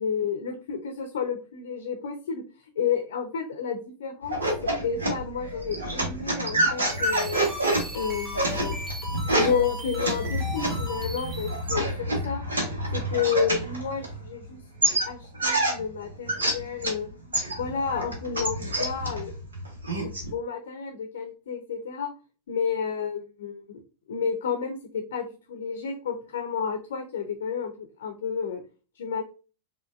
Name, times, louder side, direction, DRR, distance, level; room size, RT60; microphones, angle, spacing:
voice 1, 0.0-2.4 2.8-4.4 4.6-7.4 7.9-8.8 9.2-12.4 12.9-14.6 15.0-17.1 17.6-19.3 20.0-22.1 22.5-23.8 24.1-28.6 29.0-29.2, left 6 dB, 60° left, 5 dB, 0.7 m, -31 dB
sound 1, 4.2-14.4 14.8-17.0 17.3-20.3, right 1 dB, 75° right, 1.2 m, -28 dB
sound 2, 6.7-11.8, equal, 25° right, 2.1 m, -38 dB
5.1 x 2.6 x 2.5 m, 0.34 s
figure-of-eight pair, 90°, 0 cm